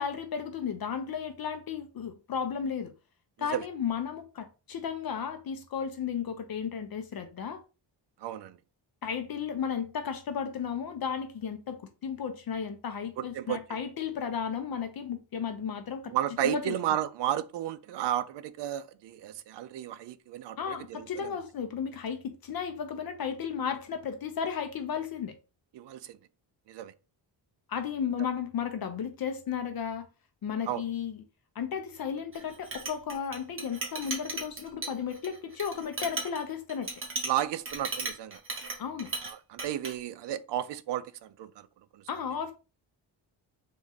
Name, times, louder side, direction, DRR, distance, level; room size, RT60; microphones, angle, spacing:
voice 1, 0.0-2.9 3.4-7.6 9.0-16.1 16.4-17.0 20.6-25.3 27.7-30.1 30.4-31.2 31.6-36.9 38.8-39.1 42.1-42.5, left 7 dB, 50° left, 0.7 m, -34 dB
voice 2, 8.2-8.6 13.2-13.6 16.1-21.4 25.7-26.2 26.7-26.9 30.7-30.8 37.2-38.4 39.2-41.7 41.9-42.0, right 11 dB, 65° right, 0.5 m, -33 dB
Chink clink, 32.3-39.3 39.6-39.9, right 3 dB, 25° right, 1.1 m, -36 dB
3.6 x 3.0 x 4.0 m
wide cardioid pair, 170°, 46 cm